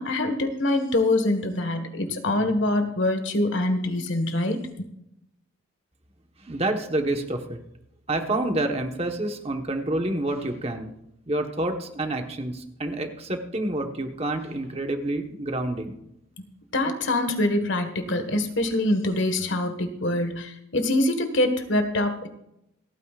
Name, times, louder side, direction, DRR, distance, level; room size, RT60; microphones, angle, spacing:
voice 1, 0.0-4.7 16.7-22.3, left 1 dB, 60° left, 7 dB, 1.6 m, -24 dB
voice 2, 6.4-7.6 8.1-10.9 11.3-16.0, right 1 dB, 30° right, 4 dB, 1.3 m, -28 dB
28.0 x 9.5 x 2.5 m, 0.79 s
head